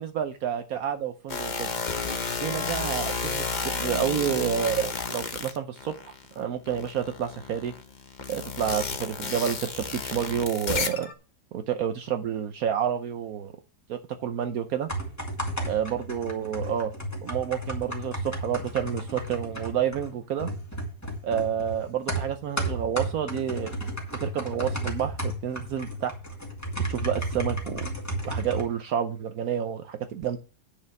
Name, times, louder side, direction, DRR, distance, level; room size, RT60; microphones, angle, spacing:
voice 1, 0.0-1.7 2.4-7.7 8.3-11.1 11.5-13.5 13.9-14.9 15.7-16.9 17.2-20.5 21.2-23.7 24.2-26.1 26.9-27.9 28.2-30.4, right 9 dB, 70° right, 8 dB, 1.1 m, -29 dB
sound 1, 1.3-6.3 6.7-11.1, left 4 dB, 35° left, 0.8 m, -32 dB
sound 2, 14.7-28.6, right 1 dB, 10° left, 2.3 m, -33 dB
9.9 x 4.9 x 6.9 m, 0.35 s
omnidirectional pair, 1.6 m